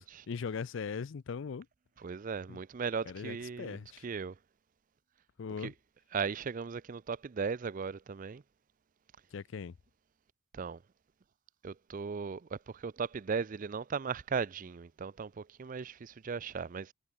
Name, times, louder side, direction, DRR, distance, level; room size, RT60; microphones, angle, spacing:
voice 1, 0.0-1.7 2.5-2.6 3.1-4.1 5.4-5.7 9.3-9.7, left 5 dB, 60° left, 0.4 m, -40 dB
voice 2, 2.0-4.3 5.6-5.7 6.1-8.4 10.5-10.8 11.6-16.9, right 5 dB, 40° right, 0.4 m, -37 dB
head